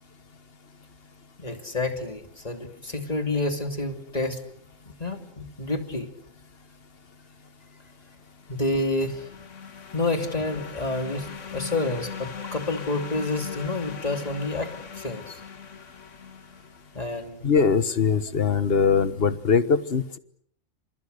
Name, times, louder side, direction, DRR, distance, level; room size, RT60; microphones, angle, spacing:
voice 1, 1.4-4.4 5.0-6.1 8.5-9.3 9.9-15.4 16.9-17.5, left 2 dB, 30° left, 6 dB, 2.8 m, -29 dB
sound 1, 8.5-17.1, left 6 dB, 70° left, 1.8 m, -40 dB
voice 2, 17.4-20.2, left 5 dB, 50° left, 13 dB, 1.5 m, -21 dB
30.0 x 27.0 x 6.7 m, 0.66 s
omnidirectional pair, 1.3 m